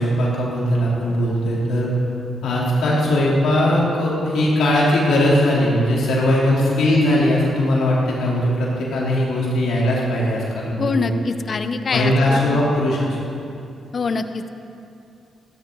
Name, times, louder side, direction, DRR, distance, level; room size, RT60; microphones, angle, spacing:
voice 1, 0.0-2.0 2.4-11.1 11.9-13.2, left 1 dB, 80° left, -5 dB, 3.5 m, -19 dB
voice 2, 10.8-12.6 13.9-14.5, left 4 dB, 50° left, 9 dB, 0.8 m, -24 dB
15.0 x 13.0 x 4.0 m, 2.6 s
cardioid pair, 60°, 0 cm